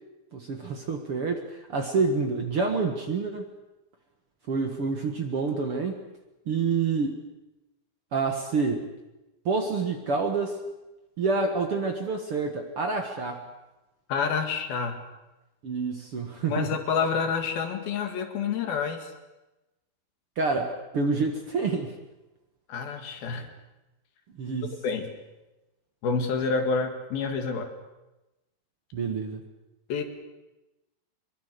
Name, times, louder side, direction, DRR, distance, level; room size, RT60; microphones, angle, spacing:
voice 1, 0.3-3.5 4.5-6.0 6.5-7.2 8.1-8.8 9.5-10.6 11.2-13.5 15.6-16.7 20.4-22.0 24.4-24.8 28.9-29.4, right 4 dB, 50° right, 4 dB, 2.0 m, -28 dB
voice 2, 14.1-15.0 16.5-19.1 22.7-23.5 24.8-25.1 26.0-27.7 29.9-30.0, left 5 dB, 75° left, 5 dB, 3.8 m, -28 dB
23.0 x 22.5 x 6.8 m, 1.0 s
omnidirectional pair, 4.3 m